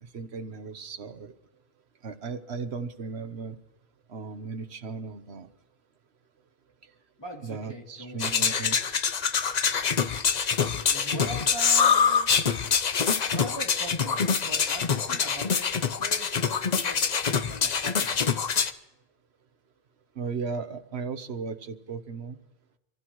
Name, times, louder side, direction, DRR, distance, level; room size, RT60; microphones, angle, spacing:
voice 1, 0.0-1.3 2.0-3.6 4.1-5.5 7.4-8.8 20.1-22.4, right 4 dB, 85° right, 9 dB, 1.3 m, -36 dB
voice 2, 7.2-8.7 10.9-12.4 13.3-18.3, right 1 dB, 25° left, -2 dB, 3.1 m, -41 dB
sound 1, 8.2-18.7, left 6 dB, 45° left, 0.8 m, -25 dB
26.0 x 15.5 x 3.1 m, 0.98 s
omnidirectional pair, 1.1 m